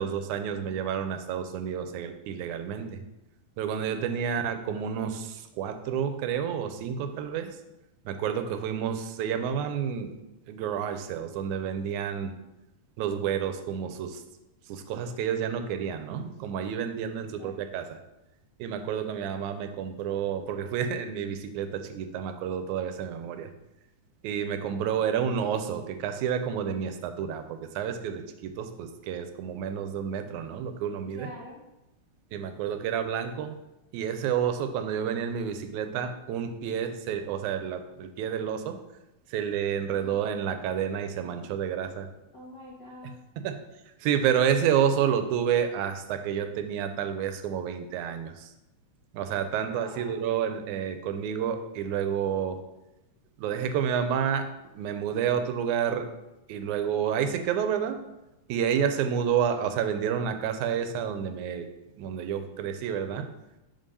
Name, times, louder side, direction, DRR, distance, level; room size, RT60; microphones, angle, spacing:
voice 1, 0.0-3.0 3.6-7.5 8.1-10.2 10.5-12.3 13.0-14.2 14.7-18.0 18.6-23.5 24.2-31.3 32.3-33.5 33.9-38.8 39.3-42.1 43.4-43.6 44.0-48.5 49.1-52.6 53.4-56.1 56.5-58.0 58.5-61.7 62.0-63.3, right 8 dB, 90° right, 8 dB, 2.0 m, -29 dB
voice 2, 4.1-4.4 17.2-17.6 31.1-31.6 40.0-40.3 42.3-43.2 49.7-50.2, left 1 dB, 75° left, -4 dB, 0.9 m, -45 dB
5.1 x 3.8 x 5.4 m, 0.94 s
omnidirectional pair, 3.3 m